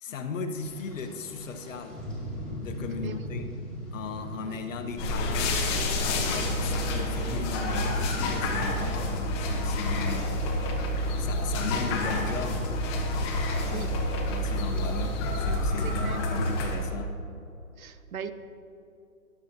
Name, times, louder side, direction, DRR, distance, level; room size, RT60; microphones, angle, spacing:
voice 1, 0.0-2.0 2.6-3.5 3.9-5.6 6.1-10.3 11.2-12.6 13.7-17.1, left 5 dB, 60° left, 7 dB, 1.1 m, -37 dB
Rain, 0.5-16.9, equal, ahead, 2.0 m, -42 dB
sound 1, 5.0-16.8, left 1 dB, 20° left, 0.9 m, -28 dB
sound 2, 5.0-10.4, equal, 20° right, 1.6 m, -47 dB
voice 2, 13.5-13.9 15.8-16.3 17.8-18.3, right 8 dB, 70° right, 11 dB, 0.9 m, -40 dB
13.5 x 11.0 x 2.9 m, 2.8 s
hypercardioid pair, 155°, 44 cm